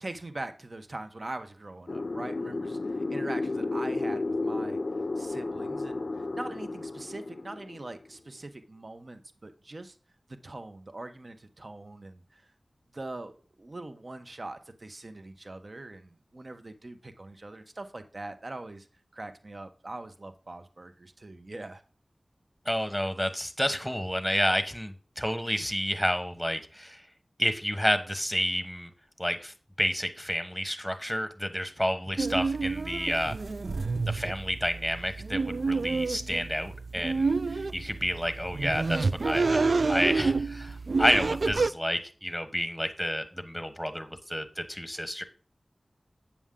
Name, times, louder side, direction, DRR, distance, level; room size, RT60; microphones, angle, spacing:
voice 1, 0.0-10.0 10.4-12.5 12.9-18.9 19.1-21.8, right 2 dB, 50° right, 8 dB, 0.9 m, -42 dB
sound 1, 1.9-8.1, left 3 dB, 65° left, 0.5 m, -32 dB
voice 2, 22.7-27.0 27.4-28.9 29.2-33.3 34.1-39.6 39.9-45.2, equal, ahead, 9 dB, 1.1 m, -30 dB
sound 2, 32.2-41.7, right 4 dB, 75° right, 0.3 m, -29 dB
8.4 x 7.1 x 3.7 m, 0.38 s
wide cardioid pair, 60°, 0 cm